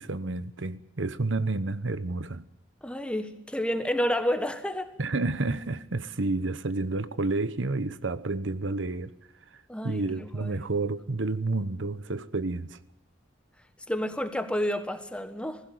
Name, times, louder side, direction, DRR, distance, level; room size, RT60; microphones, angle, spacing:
voice 1, 0.0-2.4 5.0-9.1 9.8-12.8, right 3 dB, 85° right, 1.0 m, -30 dB
voice 2, 2.8-4.9 9.7-10.6 13.9-15.6, equal, 5° left, 1.4 m, -30 dB
20.5 x 15.5 x 9.2 m
head